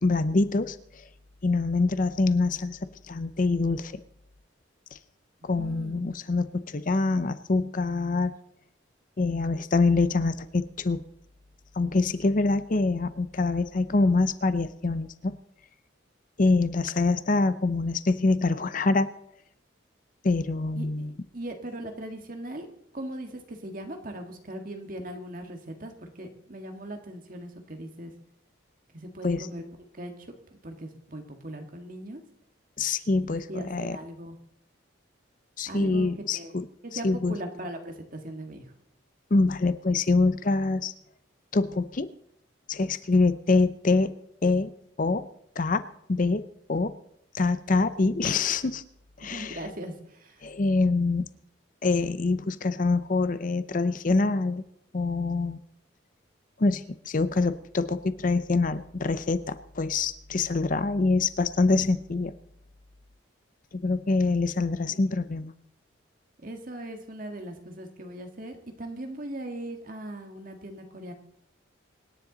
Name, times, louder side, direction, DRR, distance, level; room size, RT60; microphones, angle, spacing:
voice 1, 0.0-0.8 1.4-4.0 4.9-5.0 5.4-8.3 9.2-11.0 11.8-15.4 16.4-19.1 20.2-21.1 29.2-29.5 32.8-34.0 35.6-36.7 36.9-37.3 39.3-40.9 41.5-42.1 42.7-44.1 44.4-44.7 45.0-45.3 45.6-46.4 46.7-47.0 47.3-48.8 49.2-49.6 50.4-51.3 51.8-54.6 54.9-55.6 56.6-62.3 63.7-65.5, left 3 dB, 40° left, 13 dB, 0.6 m, -25 dB
voice 2, 5.4-6.0 20.8-21.1 21.3-22.7 22.9-28.1 28.9-29.6 30.0-30.3 30.6-32.2 33.5-34.4 35.7-36.1 36.3-36.5 36.8-38.7 49.2-50.4 66.4-71.1, right 1 dB, 45° right, 4 dB, 1.7 m, -39 dB
25.0 x 10.0 x 3.9 m, 0.76 s
head